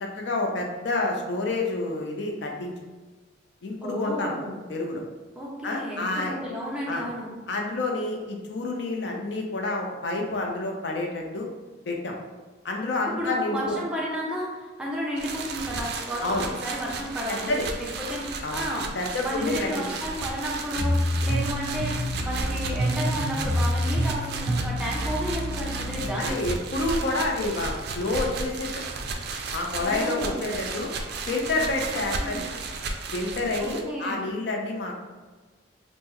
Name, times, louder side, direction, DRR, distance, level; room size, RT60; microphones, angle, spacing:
voice 1, 0.0-2.7 3.6-4.3 4.7-5.0 5.6-6.4 6.9-7.0 7.5-11.5 11.9-12.1 12.6-13.7 16.2-16.5 17.3-17.7 18.4-18.6 18.9-19.9 26.2-28.8 29.5-30.9 31.3-32.4 33.1-35.0, left 2 dB, 65° left, 1 dB, 0.5 m, -28 dB
voice 2, 3.8-4.6 5.4-7.3 13.1-17.5 17.8-18.9 19.2-26.3 29.8-30.6 32.2-32.4 33.6-34.2, equal, 5° right, -5 dB, 0.5 m, -32 dB
sound 1, 15.2-33.8, right 3 dB, 55° right, 0.3 m, -34 dB
sound 2, 20.8-26.1, equal, 90° left, 0.8 m, -27 dB
3.0 x 2.0 x 3.6 m, 1.3 s
head